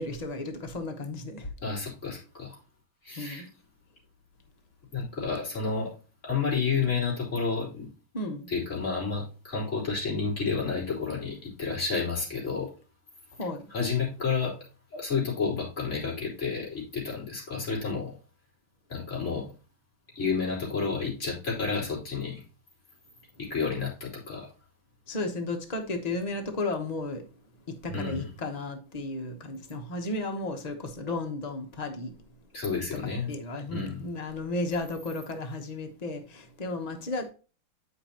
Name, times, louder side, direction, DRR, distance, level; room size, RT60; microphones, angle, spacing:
voice 1, 0.0-1.5 3.2-3.5 8.1-8.5 13.4-13.7 25.1-27.3 27.7-32.1 33.3-37.3, left 2 dB, 85° left, 0.3 m, -34 dB
voice 2, 1.6-2.6 3.0-3.5 4.9-5.9 6.2-7.9 8.5-12.7 13.7-14.6 14.9-18.1 18.9-19.5 20.2-22.4 23.4-24.5 27.9-28.3 32.5-33.3 33.7-34.0, left 5 dB, 30° left, 3.9 m, -30 dB
8.7 x 5.8 x 2.9 m
omnidirectional pair, 2.4 m